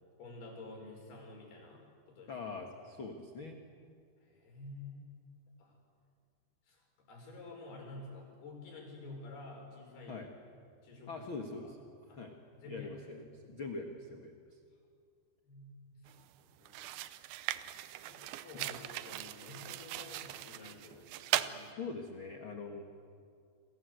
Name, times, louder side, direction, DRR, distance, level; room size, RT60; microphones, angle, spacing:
voice 1, 0.2-2.5 4.2-5.1 5.6-5.7 6.7-6.8 7.1-10.3 10.8-11.1 11.6-11.7 12.1-12.2 12.5-13.1 15.5-17.0 18.0-21.8, left 2 dB, 60° left, 1 dB, 7.3 m, -50 dB
voice 2, 2.3-3.6 10.1-10.3 11.1-11.8 12.1-12.3 12.6-14.6 21.7-22.8, left 3 dB, 90° left, 4 dB, 1.1 m, -43 dB
sound 1, 16.1-16.3 16.7-21.6, right 15 dB, 80° right, 2.2 m, -39 dB
29.5 x 22.5 x 8.1 m, 2.2 s
omnidirectional pair, 5.1 m